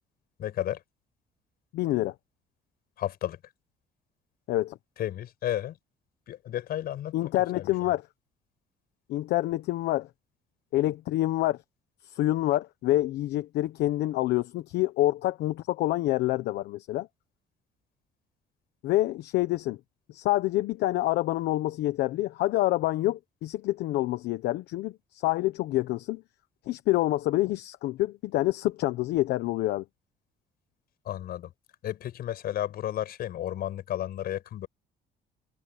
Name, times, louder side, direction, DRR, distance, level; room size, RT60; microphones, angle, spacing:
voice 1, 0.4-0.8 3.0-3.4 5.0-5.8 6.3-7.9 31.0-31.5 31.8-34.7, left 12 dB, 65° left, 5.8 m, -33 dB
voice 2, 1.7-2.1 4.5-4.8 7.1-8.0 9.1-10.1 10.7-11.6 12.0-17.1 18.8-19.8 20.1-26.2 26.7-29.8, left 16 dB, 80° left, 1.1 m, -27 dB
cardioid pair, 110°, 17 cm